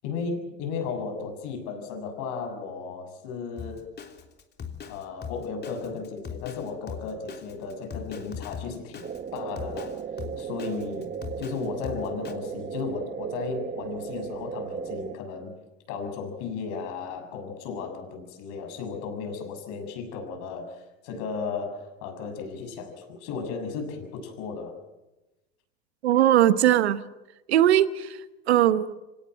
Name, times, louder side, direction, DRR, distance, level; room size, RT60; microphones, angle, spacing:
voice 1, 0.0-3.8 4.8-9.1 9.3-10.0 10.4-11.1 11.4-15.5 15.9-24.8, left 5 dB, 65° left, 5 dB, 6.7 m, -35 dB
Drum kit, 3.6-12.3, left 7 dB, 30° left, 3.3 m, -39 dB
sound 1, 9.0-15.2, right 7 dB, 30° right, 1.1 m, -36 dB
voice 2, 26.0-27.0 27.5-28.2 28.5-28.9, right 12 dB, 85° right, 14 dB, 1.1 m, -20 dB
25.5 x 18.0 x 7.9 m, 1.0 s
hypercardioid pair, 90°, 32 cm